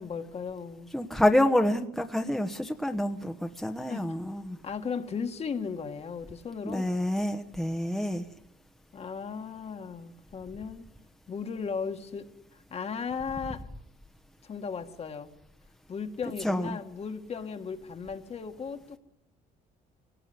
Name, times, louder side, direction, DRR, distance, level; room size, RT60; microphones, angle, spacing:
voice 1, 0.0-0.9 3.9-4.1 4.6-6.9 8.9-10.9 11.3-13.6 14.4-15.3 15.9-19.0, left 5 dB, 40° left, 6 dB, 1.8 m, -36 dB
voice 2, 0.9-4.6 6.6-8.3 16.4-16.8, left 1 dB, ahead, 5 dB, 1.1 m, -27 dB
23.0 x 18.5 x 9.6 m, 0.81 s
cardioid pair, 110°, 17 cm